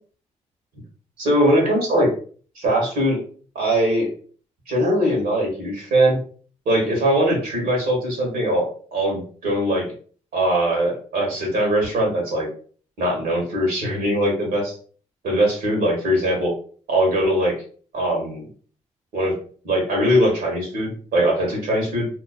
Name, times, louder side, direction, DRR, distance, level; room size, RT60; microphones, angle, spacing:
voice 1, 1.2-2.1 2.6-3.2 3.5-4.1 4.7-6.2 6.7-9.9 10.3-12.5 13.0-14.7 15.2-16.5 16.9-17.5 17.9-18.5 19.1-19.3 19.6-22.1, right 1 dB, 80° right, -1 dB, 1.1 m, -21 dB
2.4 x 2.2 x 2.4 m, 0.43 s
hypercardioid pair, 45°, 15 cm